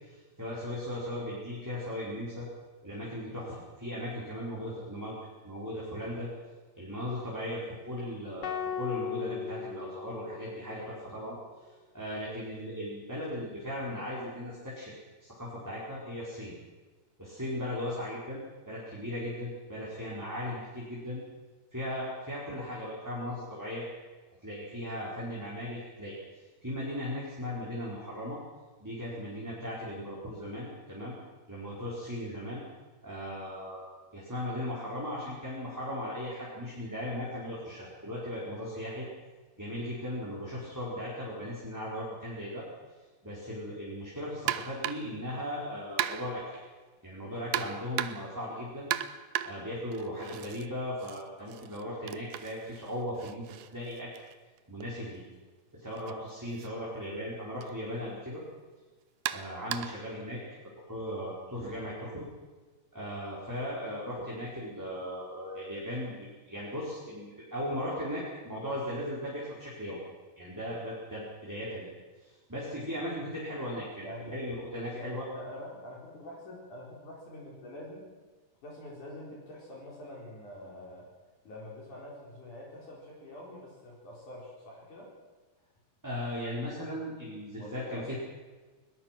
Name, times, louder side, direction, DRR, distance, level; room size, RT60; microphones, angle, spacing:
voice 1, 0.1-2.5 2.8-5.1 5.4-6.3 6.7-11.4 11.9-14.9 15.2-16.6 17.2-21.2 21.7-23.8 24.4-26.2 26.6-28.4 28.8-31.1 31.5-32.6 33.0-33.8 34.1-39.1 39.6-42.6 43.2-46.4 47.0-48.9 49.4-54.1 54.7-55.2 55.7-58.4 59.3-60.4 60.9-62.3 62.9-70.0 70.4-71.9 72.2-75.2 86.0-88.1, left 1 dB, 5° right, -6 dB, 4.4 m, -37 dB
sound 1, 8.4-10.8, left 8 dB, 70° left, 1.5 m, -37 dB
sound 2, 44.5-45.2 46.0-46.5 47.5-48.4 48.9-50.7 51.0-54.9 55.9-56.1 56.6-56.7 57.6-57.7 59.3-60.1, right 12 dB, 85° right, 1.9 m, -36 dB
voice 2, 74.0-74.4 74.9-78.1 78.6-81.1 81.4-85.1 87.6-88.1, left 1 dB, 50° left, -3 dB, 5.4 m, -45 dB
21.5 x 21.0 x 6.1 m, 1.3 s
omnidirectional pair, 4.8 m